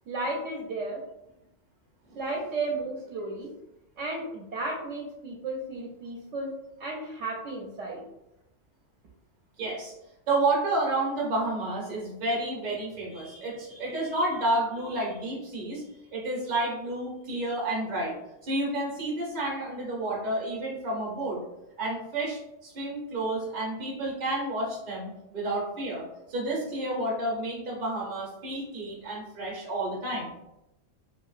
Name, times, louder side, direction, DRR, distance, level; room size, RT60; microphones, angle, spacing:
voice 1, 0.1-1.0 2.1-3.5 4.0-6.5 6.8-8.1, right 2 dB, 70° right, -2 dB, 0.9 m, -33 dB
voice 2, 9.6-9.9 10.3-15.8 16.1-18.1 18.4-21.4 21.8-30.3, right 2 dB, 40° right, -3 dB, 0.8 m, -30 dB
2.9 x 2.6 x 2.4 m, 0.87 s
omnidirectional pair, 1.3 m